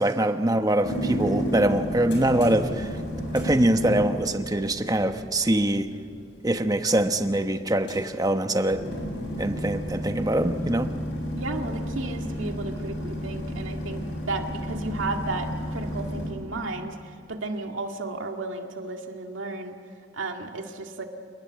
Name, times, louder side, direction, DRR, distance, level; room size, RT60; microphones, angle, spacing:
voice 1, 0.0-2.9 3.3-5.9 6.4-8.8 9.4-10.9, right 1 dB, 20° right, 8 dB, 1.0 m, -23 dB
sound 1, 0.8-16.3, equal, 65° left, 7.1 m, -32 dB
voice 2, 11.4-14.0 14.3-19.8 20.1-21.0, right 2 dB, 85° right, 3 dB, 2.1 m, -33 dB
29.0 x 19.0 x 8.1 m, 2.4 s
head